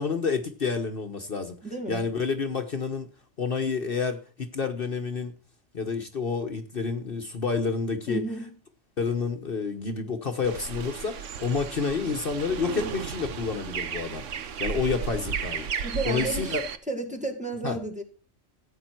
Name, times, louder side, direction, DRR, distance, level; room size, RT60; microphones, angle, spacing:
voice 1, 0.0-1.6 1.9-3.1 3.4-5.3 5.7-8.2 9.0-15.7 16.0-16.6 17.6-17.8, left 5 dB, 50° left, 1.2 m, -29 dB
voice 2, 1.6-2.0 8.1-8.5 15.8-16.6 16.9-18.0, right 2 dB, 5° right, 1.8 m, -32 dB
sound 1, 10.4-16.8, right 7 dB, 80° right, 1.3 m, -34 dB
15.0 x 9.0 x 4.5 m
omnidirectional pair, 1.2 m